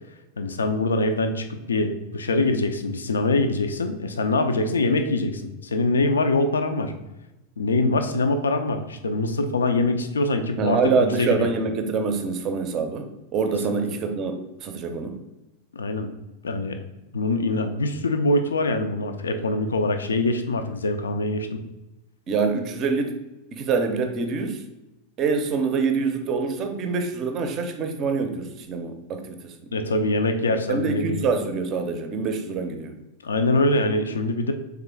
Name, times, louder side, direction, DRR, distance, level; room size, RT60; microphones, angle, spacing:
voice 1, 0.4-6.9 7.6-11.5 13.7-14.0 15.7-16.1 16.4-16.8 17.1-21.6 29.7-31.3 33.2-34.5, left 2 dB, 70° left, 7 dB, 0.3 m, -24 dB
voice 2, 10.6-13.1 13.3-15.2 22.3-23.2 23.5-24.6 25.2-29.5 30.7-32.9, right 4 dB, 35° right, 6 dB, 0.5 m, -25 dB
3.6 x 3.4 x 3.4 m, 0.99 s
figure-of-eight pair, 90°, 0 cm